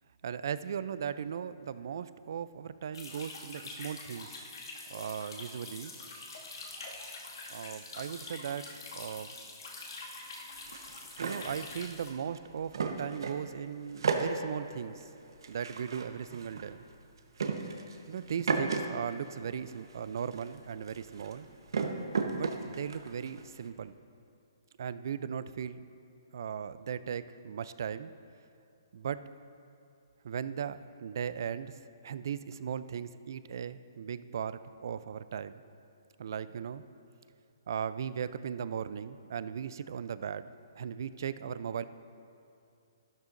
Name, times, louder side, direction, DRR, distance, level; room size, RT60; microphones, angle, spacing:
voice 1, 0.2-4.4 4.9-5.9 7.5-9.3 11.2-15.1 15.5-16.9 18.1-21.5 22.3-23.9 24.8-25.8 26.3-28.1 28.9-29.2 30.2-35.6 36.2-36.8 37.7-41.8, right 8 dB, 55° right, 14 dB, 0.4 m, -38 dB
sound 1, 2.9-12.1, left 3 dB, 70° left, 2.1 m, -45 dB
sound 2, 10.5-13.5 13.8-18.8 19.1-23.7, right 4 dB, 80° right, 1.1 m, -35 dB
12.5 x 12.0 x 2.6 m, 2.6 s
hypercardioid pair, 160°, 2 cm